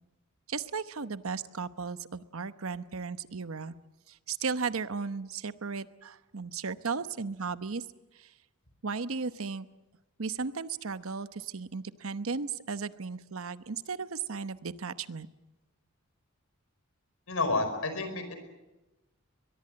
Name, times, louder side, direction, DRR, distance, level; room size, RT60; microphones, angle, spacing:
voice 1, 0.5-3.7 4.1-7.8 8.2-8.3 8.8-9.7 10.2-15.3, right 5 dB, 70° right, 13 dB, 0.9 m, -35 dB
voice 2, 17.3-18.4, left 3 dB, 75° left, 8 dB, 5.0 m, -30 dB
22.5 x 22.0 x 7.8 m, 1.0 s
head